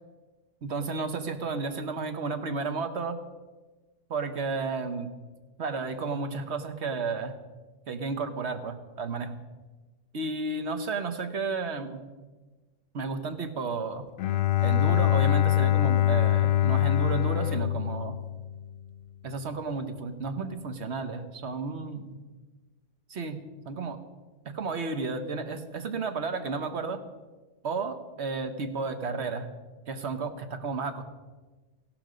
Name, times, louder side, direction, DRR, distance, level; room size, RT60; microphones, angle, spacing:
voice 1, 0.6-3.2 4.1-5.1 5.6-7.3 7.9-9.4 10.1-12.0 12.9-14.1 14.6-18.2 19.2-22.2 23.1-24.0 24.4-27.0 27.6-29.5 29.9-31.0, right 4 dB, 60° right, 8 dB, 1.4 m, -32 dB
Bowed string instrument, 14.2-18.9, left 13 dB, 85° left, 1.0 m, -24 dB
16.0 x 12.5 x 5.1 m, 1.3 s
omnidirectional pair, 1.3 m